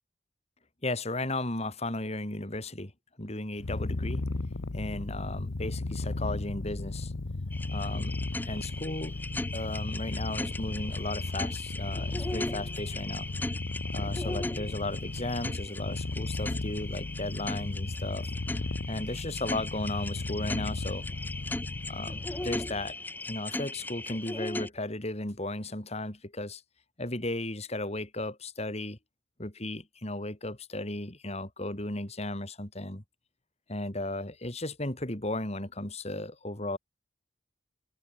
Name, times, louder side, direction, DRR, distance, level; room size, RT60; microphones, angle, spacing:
voice 1, 0.8-2.9 3.2-4.3 4.7-7.1 7.7-8.2 8.5-9.2 9.5-13.3 13.9-18.3 18.9-21.1 21.9-23.0 23.2-26.6 27.0-29.0 29.4-33.0 33.7-36.8, left 2 dB, 35° left, 2.7 m, -35 dB
Purr, 3.6-22.9, left 2 dB, 90° left, 1.0 m, -35 dB
sound 1, 7.5-24.7, left 2 dB, 10° left, 0.5 m, -38 dB
head